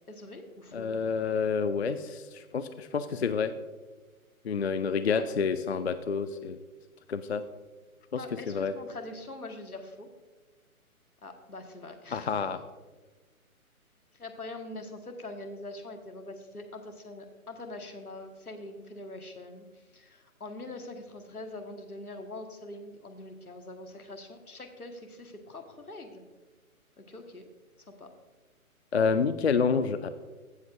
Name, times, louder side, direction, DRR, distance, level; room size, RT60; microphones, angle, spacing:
voice 1, 0.1-0.9 5.1-5.3 8.2-10.1 11.2-12.6 14.1-26.2 27.0-27.5 27.9-28.1, left 2 dB, 80° left, 4 dB, 1.6 m, -43 dB
voice 2, 0.7-3.5 4.4-6.6 7.1-7.4 8.5-8.7 12.1-12.6 28.9-30.1, left 5 dB, 50° left, 11 dB, 0.4 m, -28 dB
16.0 x 7.2 x 2.5 m, 1.3 s
figure-of-eight pair, 135°, 44 cm